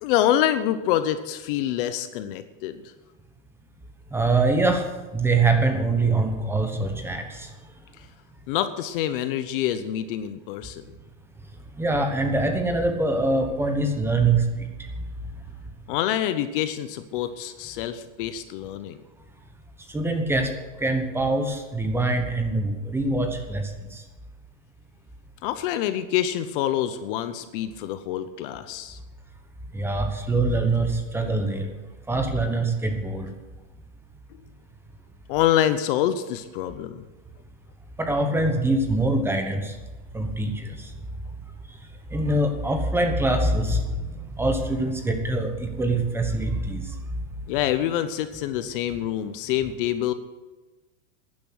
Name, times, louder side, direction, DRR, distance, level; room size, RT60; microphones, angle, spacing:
voice 1, 0.0-2.8 8.5-10.8 15.9-19.0 25.4-29.0 35.3-37.0 47.5-50.1, left 11 dB, 45° left, 11 dB, 0.8 m, -26 dB
voice 2, 4.1-4.8 5.1-7.2 11.8-14.4 19.9-20.5 20.8-23.7 29.7-31.7 32.1-33.3 38.0-39.7 40.1-40.5 42.1-43.8 44.4-46.8, right 2 dB, 5° right, 5 dB, 1.1 m, -23 dB
12.0 x 10.5 x 6.4 m, 1.2 s
supercardioid pair, 160°, 38 cm